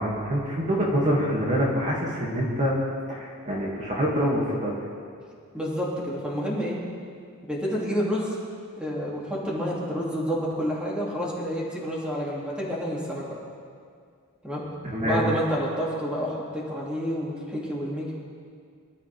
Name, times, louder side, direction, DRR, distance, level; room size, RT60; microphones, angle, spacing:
voice 1, 0.0-2.8 3.1-4.9 14.8-15.2, equal, 35° right, -4 dB, 2.5 m, -25 dB
voice 2, 5.5-6.8 7.5-8.3 8.8-13.3 14.4-14.6 15.0-18.1, equal, 5° right, -5 dB, 2.8 m, -29 dB
24.0 x 12.5 x 3.6 m, 2.2 s
head